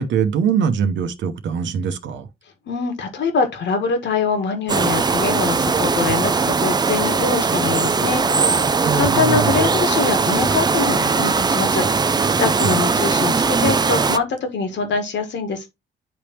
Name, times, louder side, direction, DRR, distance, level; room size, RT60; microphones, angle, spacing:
voice 1, 0.0-2.3 8.8-9.5 12.6-12.8, right 6 dB, 70° right, 0.9 m, -22 dB
voice 2, 2.7-15.7, left 5 dB, 65° left, 1.6 m, -24 dB
sound 1, 4.7-14.2, right 4 dB, 20° right, 0.4 m, -19 dB
9.7 x 3.4 x 2.9 m
cardioid pair, 90°, 20 cm